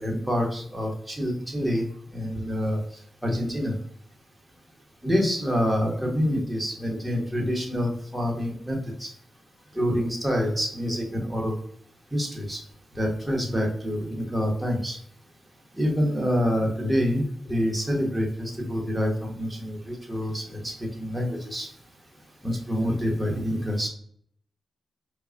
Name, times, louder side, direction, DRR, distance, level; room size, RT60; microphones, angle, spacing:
voice 1, 0.0-1.9 2.1-2.8 3.2-3.7 5.0-9.1 9.7-11.5 12.1-12.6 13.0-15.0 15.8-21.7 22.4-23.9, equal, 10° right, 0 dB, 1.2 m, -27 dB
4.5 x 2.3 x 2.5 m, 0.63 s
cardioid pair, 60°, 0 cm